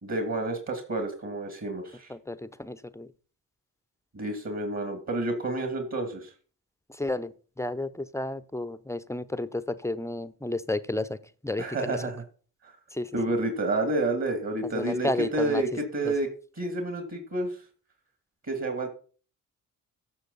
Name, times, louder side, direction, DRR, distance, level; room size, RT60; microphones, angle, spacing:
voice 1, 0.0-2.1 4.1-6.3 11.6-12.2 12.6-12.7 13.1-16.3 16.6-17.6 18.4-18.9, right 2 dB, 40° right, 4 dB, 2.7 m, -29 dB
voice 2, 2.1-3.1 7.0-7.3 7.6-11.2 11.4-12.0 12.9-13.1 14.7-15.6 16.0-16.1, left 1 dB, 5° left, 14 dB, 0.8 m, -31 dB
14.5 x 6.3 x 4.2 m, 0.40 s
hypercardioid pair, 45°, 41 cm